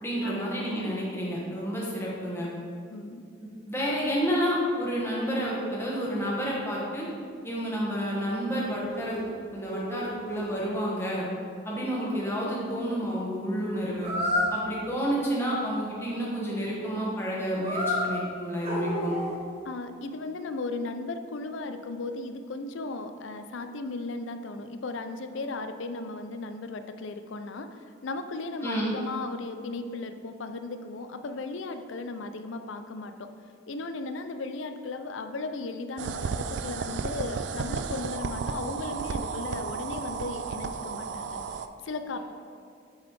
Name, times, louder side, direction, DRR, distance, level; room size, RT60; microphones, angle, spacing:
voice 1, 0.0-2.5 3.7-7.1 7.4-9.2 9.5-11.3 11.6-14.1 14.5-19.2 28.6-28.9, equal, 10° left, -5 dB, 1.3 m, -30 dB
voice 2, 2.0-2.5 2.9-3.2 19.6-33.3 33.7-41.4 41.8-42.2, left 3 dB, 75° left, 8 dB, 0.5 m, -36 dB
sound 1, 7.6-7.7 7.9-8.0 8.3-9.2 9.6-10.5 14.0-14.6 17.6-18.1 18.6-19.5, left 1 dB, 30° right, 1.1 m, -30 dB
sound 2, 36.0-41.7, right 5 dB, 60° right, 0.3 m, -33 dB
7.3 x 4.1 x 4.7 m, 2.4 s
head